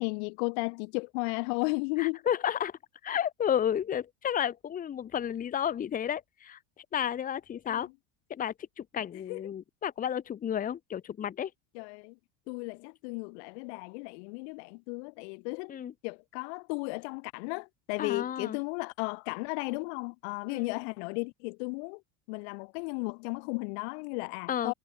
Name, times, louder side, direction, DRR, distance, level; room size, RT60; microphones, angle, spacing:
voice 1, 0.0-2.2 7.7-7.9 9.3-9.4 11.7-12.2 12.5-15.7 16.0-22.0 22.3-24.7, left 35 dB, 60° left, 3.6 m, -34 dB
voice 2, 2.0-7.9 8.3-11.5 15.7-15.9 18.0-18.6 20.5-20.7 24.5-24.7, left 9 dB, 20° left, 2.3 m, -32 dB
cardioid pair, 165°, 38 cm